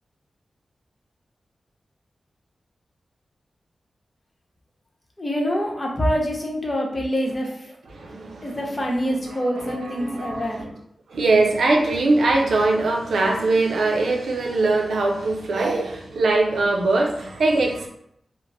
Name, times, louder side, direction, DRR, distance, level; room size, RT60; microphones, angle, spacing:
voice 1, 5.2-7.7 8.4-10.6, equal, 30° left, -1 dB, 0.9 m, -25 dB
voice 2, 7.9-8.6 9.6-10.7 11.1-17.9, right 2 dB, 85° right, 1 dB, 0.5 m, -21 dB
2.5 x 2.0 x 3.2 m, 0.71 s
cardioid pair, 40°, 0 cm